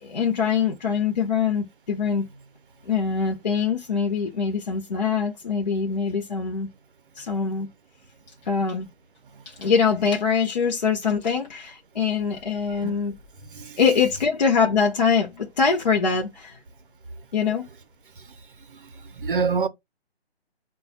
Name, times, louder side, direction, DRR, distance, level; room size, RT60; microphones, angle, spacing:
voice 1, 0.0-2.3 2.9-6.7 7.2-7.7 8.5-8.9 9.5-13.1 13.8-16.6 17.3-17.7, left 6 dB, 45° left, 0.6 m, -23 dB
voice 2, 13.4-13.8 18.2-18.3 18.7-19.7, right 5 dB, 55° right, 0.6 m, -28 dB
3.9 x 2.3 x 4.0 m
figure-of-eight pair, 145°, 32 cm